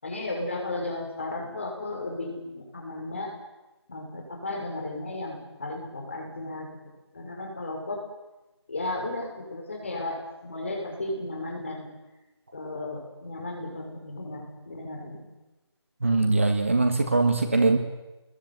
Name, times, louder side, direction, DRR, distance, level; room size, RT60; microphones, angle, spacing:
voice 1, 0.0-3.3 3.9-6.7 7.1-8.0 8.7-11.9 12.5-15.3, left 2 dB, 25° left, 1 dB, 6.1 m, -34 dB
voice 2, 16.0-17.8, right 3 dB, 30° right, 7 dB, 1.7 m, -22 dB
27.5 x 21.5 x 9.5 m, 1.1 s
figure-of-eight pair, 180°, 14 cm